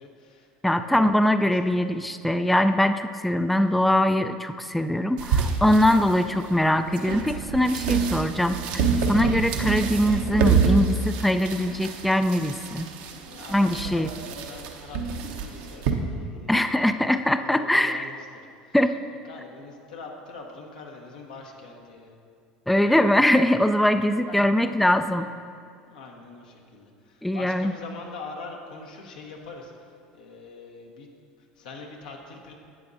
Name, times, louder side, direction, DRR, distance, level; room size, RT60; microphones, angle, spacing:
voice 1, 0.0-1.9 3.7-3.8 13.2-17.0 17.4-18.2 18.6-19.0 19.2-22.1 23.9-25.2 25.9-31.1 31.4-32.5, left 3 dB, 80° left, 0 dB, 1.3 m, -44 dB
voice 2, 0.6-8.6 9.1-12.9 13.5-14.1 16.5-18.1 18.7-19.0 22.7-25.3 27.2-27.7, left 1 dB, ahead, 10 dB, 0.3 m, -22 dB
sound 1, 5.2-15.9, right 5 dB, 70° right, 0.9 m, -27 dB
11.0 x 8.6 x 2.7 m, 2.3 s
hypercardioid pair, 80°, 4 cm